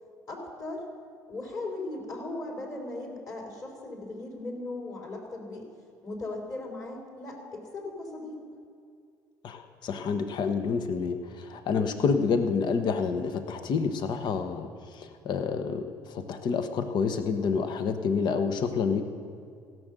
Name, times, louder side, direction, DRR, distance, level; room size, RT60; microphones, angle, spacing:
voice 1, 0.3-0.8 1.3-5.7 6.0-8.4, left 2 dB, 35° left, 0 dB, 3.7 m, -38 dB
voice 2, 9.4-14.7 14.9-19.1, left 5 dB, 55° left, 8 dB, 1.0 m, -28 dB
16.0 x 6.4 x 6.6 m, 2.3 s
hypercardioid pair, 65°, 9 cm